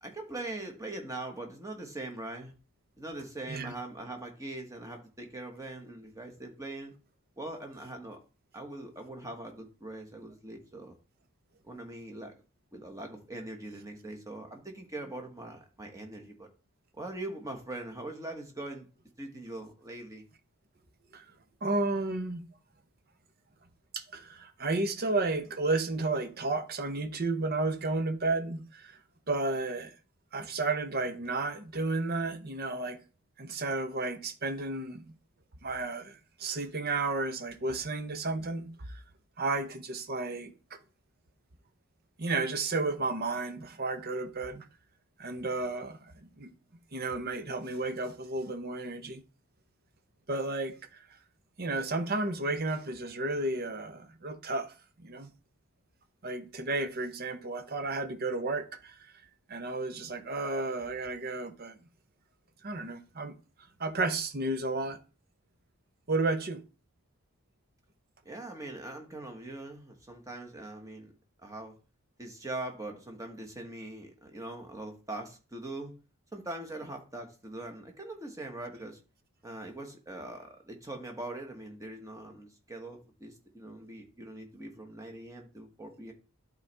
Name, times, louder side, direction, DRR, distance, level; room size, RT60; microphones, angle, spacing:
voice 1, 0.0-2.5 3.0-6.9 7.4-8.2 8.5-11.0 11.6-12.3 12.7-16.5 17.0-18.9 19.2-20.2 68.2-71.1 71.4-71.7 72.2-75.9 76.3-79.0 79.4-86.1, right 2 dB, 15° right, 1.3 m, -42 dB
voice 2, 21.6-22.4 23.9-29.0 29.3-29.9 30.3-33.0 33.4-35.1 35.6-39.0 39.4-40.5 42.2-44.6 45.2-46.5 46.9-49.2 50.3-50.8 51.6-54.7 55.0-55.3 56.2-58.9 59.5-61.8 62.6-63.3 63.8-65.0 66.1-66.6, right 3 dB, 45° right, 0.8 m, -32 dB
12.0 x 4.0 x 3.4 m
head